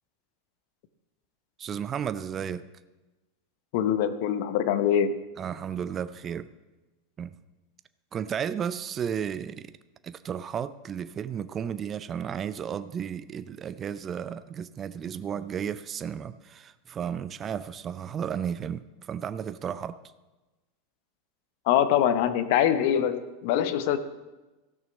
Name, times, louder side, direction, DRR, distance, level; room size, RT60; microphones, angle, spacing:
voice 1, 1.6-2.6 5.4-6.5 7.2-7.4 8.1-9.7 10.0-20.0, right 8 dB, 30° right, 14 dB, 0.5 m, -33 dB
voice 2, 3.7-5.1 21.7-24.0, left 10 dB, 65° left, 12 dB, 0.8 m, -24 dB
15.0 x 6.3 x 5.2 m, 1.1 s
hypercardioid pair, 100°, 0 cm